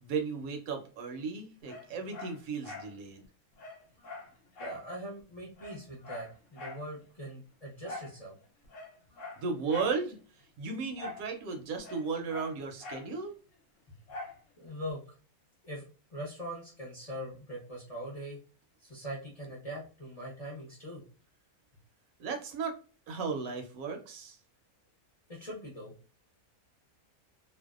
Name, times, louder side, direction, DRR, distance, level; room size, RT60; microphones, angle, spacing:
voice 1, 0.0-3.2 9.4-10.2 10.6-13.3 22.2-22.8 23.1-24.4, right 5 dB, 75° right, 4 dB, 1.0 m, -35 dB
Dog, 1.6-2.9 3.2-3.3 3.6-4.9 5.2-5.3 5.6-6.9 7.8-8.2 8.6-10.0 11.0-11.3 11.6-13.1 14.1-14.4 14.9-15.0, left 3 dB, 65° left, 0.9 m, -44 dB
voice 2, 4.6-8.3 14.6-15.1 15.6-15.8 16.1-18.4 18.8-21.0 25.3-25.9, equal, 35° left, -6 dB, 0.7 m, -42 dB
2.6 x 2.0 x 2.3 m, 0.37 s
omnidirectional pair, 1.5 m